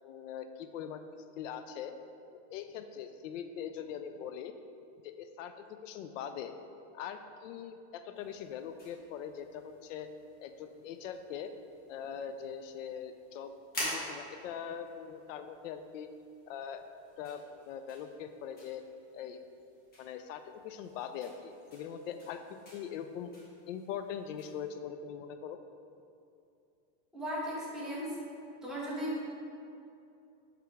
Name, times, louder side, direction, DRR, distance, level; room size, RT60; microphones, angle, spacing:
voice 1, 0.0-1.0 1.4-1.9 2.5-4.5 5.0-6.5 6.9-10.1 10.4-11.5 11.9-13.5 13.8-16.1 16.5-16.8 17.2-18.8 19.1-19.5 20.0-22.4 22.7-23.3 23.7-25.6, left 8 dB, 90° left, 9 dB, 0.6 m, -42 dB
sound 1, 8.1-24.6, left 1 dB, 25° left, 1.4 m, -48 dB
voice 2, 27.1-28.1 28.6-29.2, equal, ahead, -8 dB, 1.2 m, -36 dB
6.0 x 4.9 x 3.4 m, 2.6 s
supercardioid pair, 155°, 37 cm